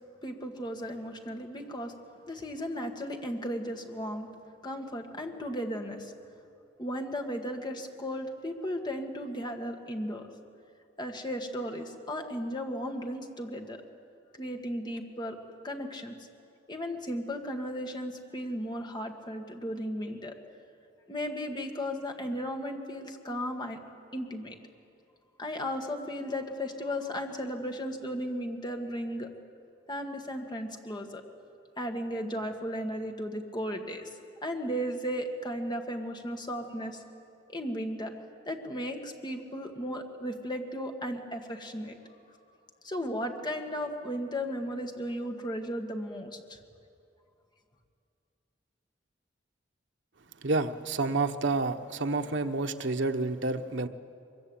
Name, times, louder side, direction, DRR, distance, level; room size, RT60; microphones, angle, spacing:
voice 1, 0.2-1.9 2.3-4.3 4.6-6.1 6.8-10.3 11.0-13.8 14.3-15.4 15.6-16.1 16.7-20.4 21.1-23.8 24.1-24.6 25.4-29.3 29.9-31.2 31.8-34.1 34.4-37.0 37.5-38.1 38.5-42.0 42.8-46.6, equal, 25° left, 3 dB, 1.9 m, -35 dB
voice 2, 50.4-53.9, right 3 dB, 75° right, 6 dB, 1.1 m, -29 dB
23.0 x 23.0 x 8.9 m, 2.5 s
head